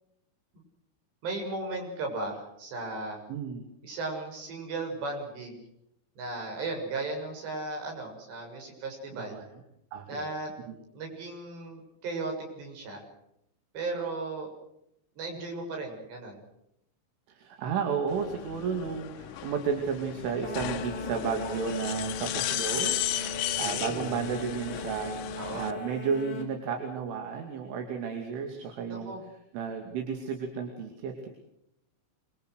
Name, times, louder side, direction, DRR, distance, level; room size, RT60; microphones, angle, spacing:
voice 1, 1.2-3.2 3.8-5.6 6.2-9.4 10.1-10.5 10.9-13.0 13.7-14.5 15.2-16.4 23.6-24.1 25.4-25.7 28.9-29.2, right 3 dB, 60° right, 2 dB, 9.0 m, -36 dB
voice 2, 3.3-3.7 9.1-9.5 9.9-10.3 10.7-10.8 17.3-23.0 23.6-29.1 29.5-31.3, right 6 dB, 80° right, 3 dB, 5.1 m, -33 dB
sound 1, 18.1-25.7, left 12 dB, 75° left, 3.4 m, -35 dB
sound 2, 20.4-26.5, left 1 dB, 40° left, 6.1 m, -39 dB
26.5 x 24.0 x 6.5 m, 0.77 s
omnidirectional pair, 5.6 m